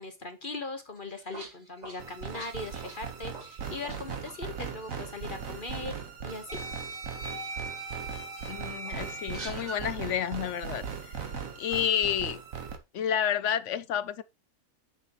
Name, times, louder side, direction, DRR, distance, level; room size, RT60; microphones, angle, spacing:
voice 1, 0.0-5.9 6.2-6.6, left 3 dB, 35° left, 1.3 m, -39 dB
sound 1, 1.0-4.0 4.2-4.4 5.6-5.7 6.5-9.8, right 2 dB, 25° right, 2.4 m, -41 dB
sound 2, 2.0-12.8, right 6 dB, 60° right, 1.7 m, -39 dB
voice 2, 8.5-11.2 11.6-12.4 12.9-14.2, left 9 dB, 60° left, 0.9 m, -30 dB
8.5 x 6.9 x 3.0 m
omnidirectional pair, 1.7 m